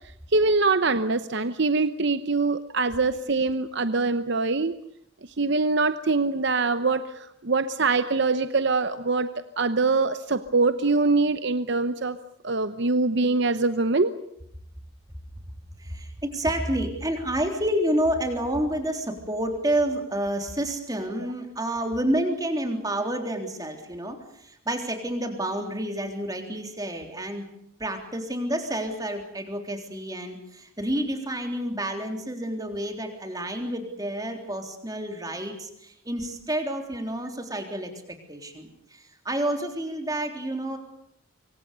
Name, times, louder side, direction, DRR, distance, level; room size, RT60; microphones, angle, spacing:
voice 1, 0.3-4.7 5.4-9.3 9.6-12.2 12.4-14.1, right 3 dB, 55° right, 11 dB, 0.9 m, -23 dB
voice 2, 15.8-27.5 27.8-40.8, right 1 dB, 15° right, 4 dB, 3.6 m, -29 dB
25.5 x 24.0 x 6.9 m, 0.75 s
head